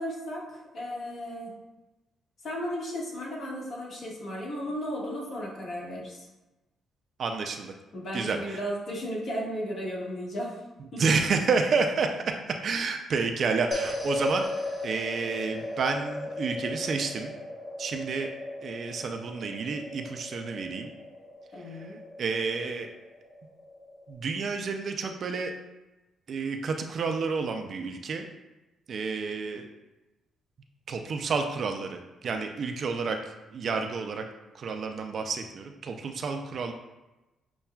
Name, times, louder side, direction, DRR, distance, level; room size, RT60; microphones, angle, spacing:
voice 1, 0.0-1.5 2.4-6.3 7.9-10.6 10.9-11.0 21.5-22.0, equal, 55° left, -5 dB, 1.4 m, -35 dB
voice 2, 7.2-7.7 8.1-8.6 11.0-12.1 12.6-14.5 14.8-17.3 17.8-18.3 18.6-20.9 22.2-22.9 24.1-25.5 26.3-28.3 28.9-29.6 30.9-33.2 33.5-34.3 34.6-36.7, right 4 dB, 55° right, 5 dB, 0.4 m, -30 dB
sound 1, 13.7-24.1, left 1 dB, 15° left, 1.1 m, -37 dB
6.8 x 2.3 x 2.2 m, 1.1 s
cardioid pair, 90°, 0 cm